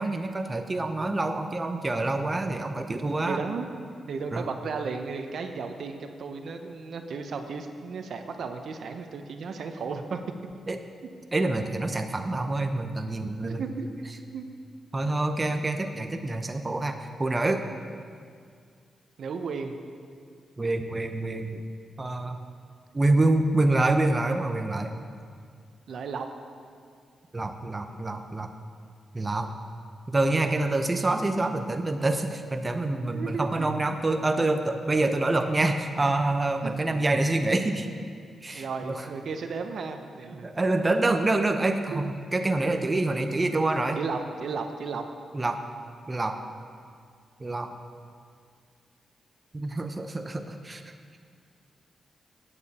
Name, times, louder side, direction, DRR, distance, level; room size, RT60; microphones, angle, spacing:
voice 1, 0.0-3.4 4.3-4.5 10.7-10.8 11.3-13.6 14.9-17.6 20.6-21.6 22.0-22.4 22.9-24.9 27.3-28.5 29.1-29.5 30.1-37.9 38.4-39.0 40.4-44.0 45.3-45.6 46.1-46.4 47.4-47.7 49.5-50.8, right 2 dB, 25° right, 6 dB, 0.8 m, -26 dB
voice 2, 3.3-3.7 4.1-10.2 12.1-12.2 13.4-14.1 14.3-14.5 17.3-17.4 19.2-19.8 25.9-26.3 33.0-33.7 36.6-36.9 38.5-40.5 41.9-42.0 44.0-45.1, right 5 dB, 70° right, 6 dB, 0.8 m, -34 dB
15.5 x 8.7 x 4.3 m, 2.2 s
cardioid pair, 80°, 0 cm